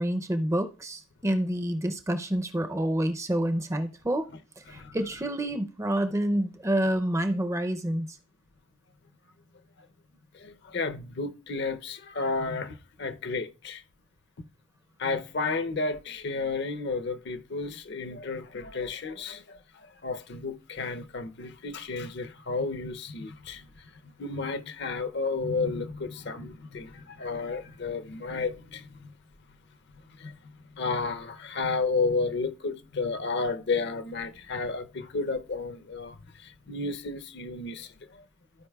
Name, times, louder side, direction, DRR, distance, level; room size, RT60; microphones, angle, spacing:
voice 1, 0.0-4.3 4.7-8.2, right 1 dB, 15° right, 0.5 m, -28 dB
voice 2, 10.3-13.8 15.0-29.1 30.2-38.2, left 4 dB, 55° left, 0.6 m, -32 dB
15.0 x 5.1 x 2.3 m
head